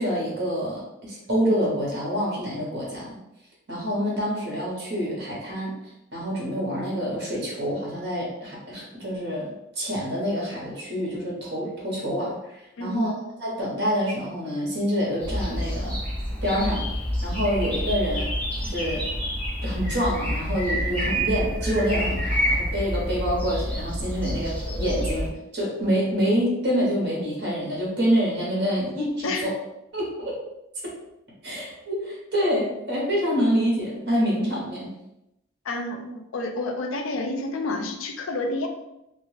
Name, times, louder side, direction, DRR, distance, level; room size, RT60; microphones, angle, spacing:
voice 1, 0.0-3.2 3.7-5.8 6.1-12.4 12.8-13.1 13.4-16.0 16.4-16.9 17.2-18.3 18.6-19.1 19.6-29.5 29.9-30.3 30.8-30.9 31.4-34.9, equal, 50° right, -4 dB, 1.0 m, -26 dB
voice 2, 12.8-13.2 29.2-29.5 35.6-38.7, left 2 dB, 75° left, 4 dB, 0.4 m, -29 dB
sound 1, 15.2-25.3, equal, 5° left, 0.5 m, -28 dB
2.4 x 2.3 x 3.2 m, 0.86 s
head